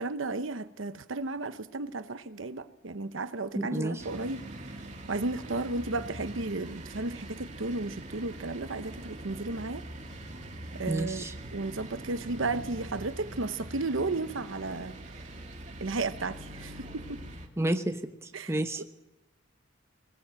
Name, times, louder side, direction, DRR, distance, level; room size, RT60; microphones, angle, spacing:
voice 1, 0.0-4.4 5.1-9.8 10.8-11.3 11.5-15.0 15.8-17.2 18.3-18.8, right 3 dB, 80° right, 1.0 m, -34 dB
voice 2, 3.5-4.0 10.9-11.3 17.6-18.8, right 1 dB, 15° right, 0.9 m, -31 dB
sound 1, 4.0-17.5, right 1 dB, 35° right, 2.2 m, -43 dB
21.0 x 16.5 x 7.6 m
head